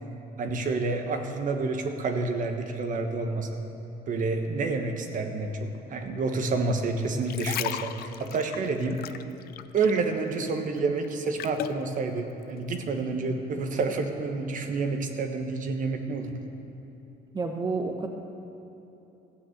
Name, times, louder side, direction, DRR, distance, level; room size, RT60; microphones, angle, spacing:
voice 1, 0.4-3.6 4.1-7.9 8.2-9.2 9.7-16.3, right 3 dB, 50° right, 5 dB, 1.4 m, -29 dB
sound 1, 7.1-10.1 10.4-11.8 12.4-12.6, left 12 dB, 65° left, 0.5 m, -36 dB
voice 2, 17.3-18.1, right 4 dB, 25° right, 3 dB, 1.0 m, -29 dB
14.5 x 9.2 x 8.0 m, 3.0 s
cardioid pair, 110°, 17 cm